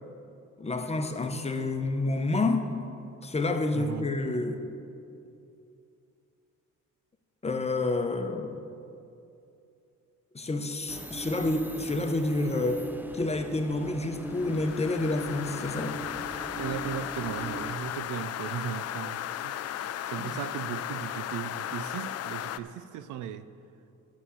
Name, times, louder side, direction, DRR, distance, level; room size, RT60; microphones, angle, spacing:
voice 1, 0.6-2.7 3.2-4.6 7.4-8.7 10.3-16.0, left 2 dB, 20° left, 6 dB, 0.8 m, -29 dB
voice 2, 3.7-4.1 16.5-19.5 20.0-23.5, right 9 dB, 80° right, 13 dB, 0.5 m, -37 dB
sound 1, 10.9-17.8, right 1 dB, 5° right, 0.6 m, -40 dB
sound 2, 14.2-22.6, left 11 dB, 55° left, 0.4 m, -36 dB
9.0 x 7.2 x 7.0 m, 2.7 s
cardioid pair, 90°, 30 cm